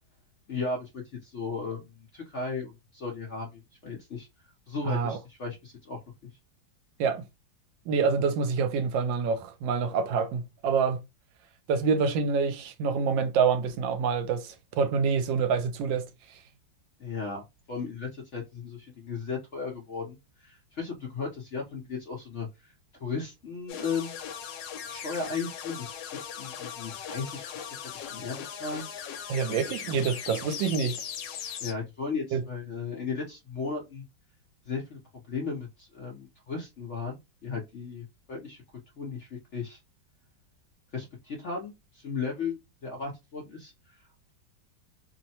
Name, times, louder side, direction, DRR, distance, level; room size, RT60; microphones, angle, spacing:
voice 1, 0.5-4.3 4.7-6.3 17.0-22.7 23.0-24.2 24.8-27.4 27.8-29.2 29.5-30.1 31.6-34.1 34.6-35.0 35.3-38.6 39.0-39.8 40.9-43.9, left 4 dB, 60° left, 0.7 m, -36 dB
voice 2, 4.9-5.2 7.0-7.3 7.9-11.0 11.7-16.0 29.3-31.0 32.3-32.4, right 5 dB, 80° right, 1.3 m, -26 dB
sound 1, 23.7-31.7, left 8 dB, 75° left, 1.2 m, -39 dB
3.1 x 2.1 x 2.7 m
omnidirectional pair, 2.0 m